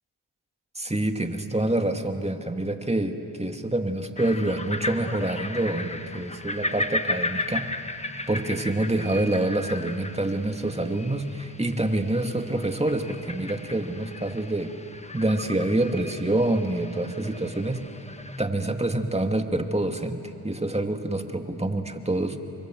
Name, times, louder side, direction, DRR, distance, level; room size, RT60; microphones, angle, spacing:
voice 1, 0.7-7.7 8.3-14.7 15.1-17.9 18.4-22.4, right 1 dB, 15° right, 5 dB, 2.2 m, -26 dB
sound 1, 4.2-18.4, left 2 dB, 15° left, 1.4 m, -35 dB
29.5 x 24.5 x 7.9 m, 2.7 s
cardioid pair, 50°, 42 cm